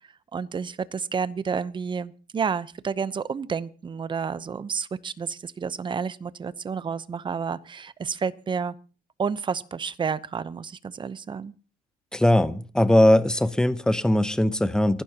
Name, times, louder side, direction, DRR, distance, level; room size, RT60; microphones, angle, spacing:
voice 1, 0.3-8.7 9.2-11.5, right 6 dB, 30° right, 16 dB, 0.8 m, -30 dB
voice 2, 12.1-15.0, left 1 dB, 5° left, 13 dB, 0.9 m, -20 dB
28.5 x 11.5 x 2.9 m, 0.36 s
cardioid pair, 110°, 17 cm